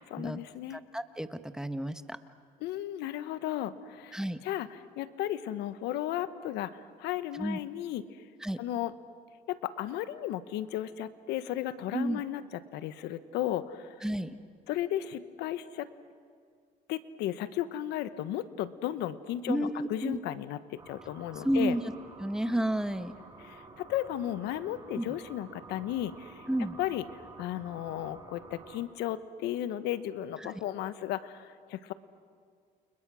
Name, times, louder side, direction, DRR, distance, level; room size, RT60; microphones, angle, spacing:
voice 1, 0.1-0.8 2.6-8.2 8.6-8.9 9.5-12.4 12.7-13.9 14.7-15.9 16.9-21.8 23.4-26.5 26.8-27.0 27.4-31.9, left 12 dB, 90° left, 13 dB, 1.2 m, -35 dB
voice 2, 0.7-2.2 4.1-4.4 7.3-7.6 8.4-8.6 11.9-12.2 14.0-14.4 19.5-20.2 21.4-21.8 22.2-23.1 25.0-25.1 26.5-26.8 30.4-30.5, right 1 dB, 5° right, 10 dB, 1.2 m, -31 dB
sound 1, 20.8-28.8, right 3 dB, 25° right, 4.7 m, -51 dB
29.5 x 29.0 x 6.3 m, 2.1 s
cardioid pair, 110°, 17 cm